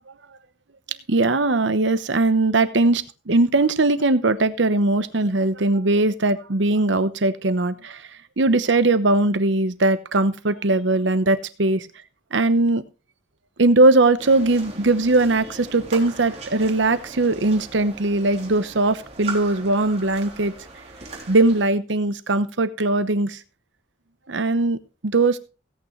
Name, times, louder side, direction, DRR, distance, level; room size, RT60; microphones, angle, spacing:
voice 1, 1.1-8.0 8.4-11.9 12.3-12.8 13.6-20.5 21.3-23.4 24.3-24.8 25.0-25.4, right 2 dB, 80° right, 13 dB, 1.0 m, -20 dB
sound 1, 14.2-21.6, right 3 dB, 35° right, 3.3 m, -39 dB
17.0 x 9.0 x 3.2 m, 0.32 s
head